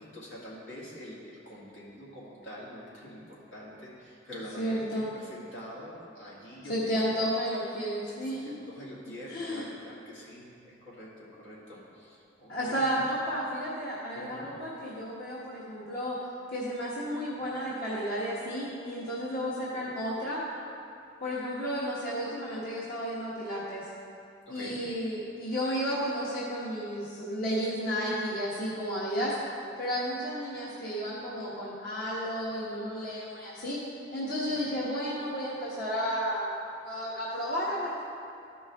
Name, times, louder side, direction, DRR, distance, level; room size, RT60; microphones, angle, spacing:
voice 1, 0.0-7.0 8.4-13.0 14.1-14.5 24.5-24.8 34.5-34.6, equal, 85° left, -7 dB, 2.2 m, -45 dB
voice 2, 4.6-5.1 6.7-8.6 9.3-9.6 12.5-16.1 16.5-20.4 21.2-23.9 24.5-29.3 29.8-33.8 34.1-36.5 36.8-38.0, equal, 55° left, -8 dB, 1.2 m, -32 dB
13.0 x 5.3 x 3.5 m, 2.5 s
head